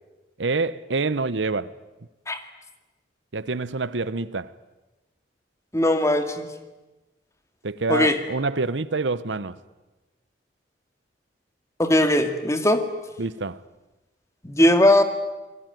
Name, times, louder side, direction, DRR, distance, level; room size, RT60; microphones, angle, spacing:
voice 1, 0.4-1.7 3.3-4.5 7.6-9.6 13.2-13.6, right 3 dB, 80° right, 0.9 m, -26 dB
voice 2, 5.7-6.5 7.9-8.2 11.8-12.8 14.4-15.0, left 1 dB, 15° left, 2.1 m, -19 dB
27.5 x 21.0 x 9.3 m
head